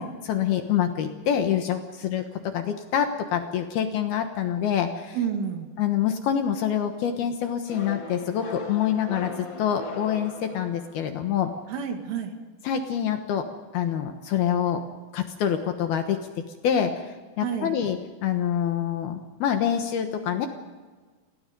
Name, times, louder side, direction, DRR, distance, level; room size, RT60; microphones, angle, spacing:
voice 1, 0.0-5.2 5.8-11.5 12.6-13.5 13.7-14.8 15.1-16.2 16.6-17.0 17.4-20.5, left 9 dB, 65° left, 6 dB, 2.7 m, -26 dB
voice 2, 5.1-5.7 11.7-12.4 17.4-17.8, right 7 dB, 80° right, 5 dB, 4.7 m, -29 dB
sound 1, 7.7-11.2, left 3 dB, 45° left, 1.5 m, -38 dB
29.5 x 20.0 x 5.4 m, 1.4 s
omnidirectional pair, 5.6 m